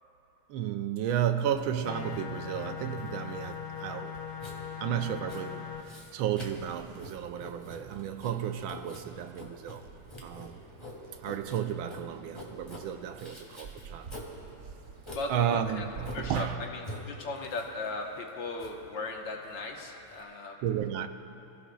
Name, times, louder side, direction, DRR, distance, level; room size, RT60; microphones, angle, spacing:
voice 1, 0.5-4.2 4.8-9.8 10.2-10.6 11.2-14.1 15.3-16.6 20.6-21.1, right 9 dB, 80° right, 1.3 m, -33 dB
Writing, 1.1-20.2, left 1 dB, 15° left, 1.9 m, -47 dB
sound 1, 1.8-5.8, left 8 dB, 80° left, 0.7 m, -40 dB
sound 2, 5.0-16.5, right 5 dB, 65° right, 0.7 m, -51 dB
voice 2, 15.1-15.9 16.1-20.6, left 3 dB, 65° left, 1.7 m, -37 dB
28.0 x 15.5 x 2.3 m
omnidirectional pair, 2.3 m